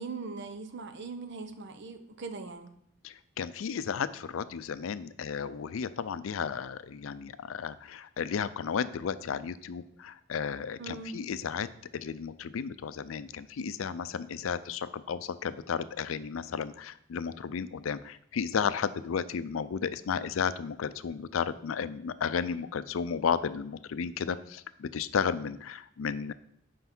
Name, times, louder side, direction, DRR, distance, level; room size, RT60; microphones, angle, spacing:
voice 1, 0.0-2.7 10.8-11.2, right 4 dB, 60° right, 8 dB, 0.8 m, -40 dB
voice 2, 3.0-11.7 11.9-26.3, left 6 dB, 90° left, 14 dB, 0.4 m, -33 dB
5.6 x 5.3 x 6.0 m, 0.71 s
head